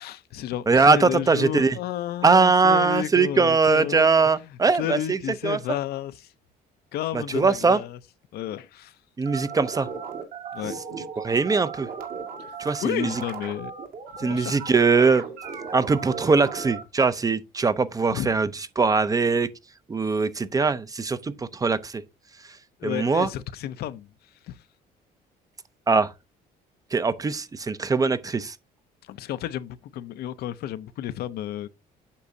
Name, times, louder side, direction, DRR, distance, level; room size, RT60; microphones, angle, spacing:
voice 1, 0.0-6.3 6.9-8.0 8.3-9.0 10.5-10.7 12.4-12.5 12.8-13.7 14.2-14.5 18.1-18.3 22.8-24.1 24.5-24.6 29.0-31.7, left 12 dB, 70° left, 0.6 m, -32 dB
voice 2, 0.7-1.8 2.2-5.2 5.4-5.6 7.1-7.8 9.2-9.9 11.2-11.9 12.6-13.1 14.2-15.2 15.7-18.5 18.8-19.5 19.9-22.0 22.8-23.3 25.9-26.1 26.9-28.5, right 4 dB, 20° right, 0.5 m, -21 dB
sound 1, 9.3-16.8, right 6 dB, 60° right, 2.0 m, -36 dB
8.4 x 6.0 x 2.7 m
cardioid pair, 110°, 17 cm